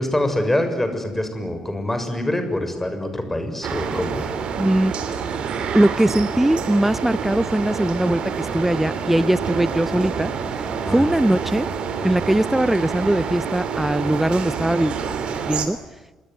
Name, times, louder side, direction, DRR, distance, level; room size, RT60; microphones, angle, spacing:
voice 1, 0.0-4.2 10.8-11.1, left 1 dB, 10° left, 7 dB, 6.7 m, -25 dB
sound 1, 3.6-15.7, right 6 dB, 55° right, 3.1 m, -27 dB
voice 2, 4.6-4.9 5.7-10.3 10.9-11.7 12.0-14.9 15.4-15.8, right 1 dB, 10° right, 21 dB, 0.9 m, -20 dB
27.0 x 21.5 x 9.7 m, 1.2 s
figure-of-eight pair, 45°, 2 cm